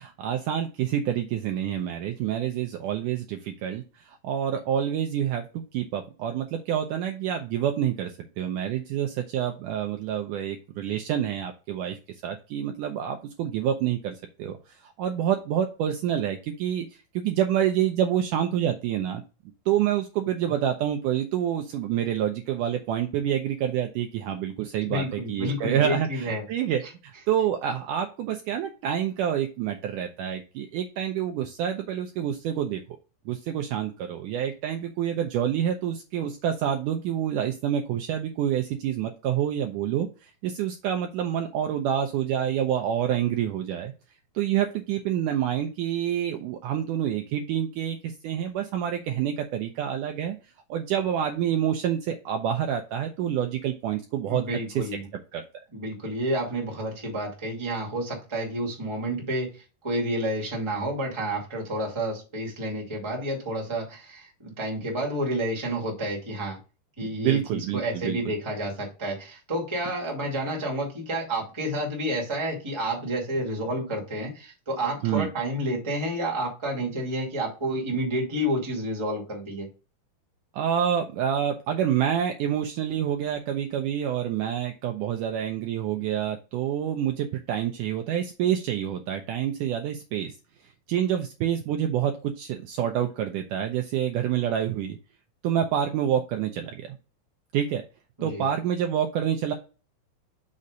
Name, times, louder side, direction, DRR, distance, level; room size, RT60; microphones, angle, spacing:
voice 1, 0.0-12.0 12.2-16.9 17.1-19.2 19.7-26.8 27.3-32.8 33.3-43.9 44.4-50.4 50.7-54.4 54.8-54.9 55.3-55.4 67.0-68.2 75.0-75.3 80.5-90.3 90.9-95.0 95.4-97.0 97.5-97.8 98.2-99.5, right 10 dB, 90° right, 5 dB, 1.8 m, -27 dB
voice 2, 24.8-26.4 54.3-55.1 55.7-66.6 67.0-79.7 98.2-98.4, right 1 dB, 15° right, -1 dB, 1.2 m, -30 dB
6.3 x 4.1 x 4.9 m, 0.32 s
omnidirectional pair, 4.4 m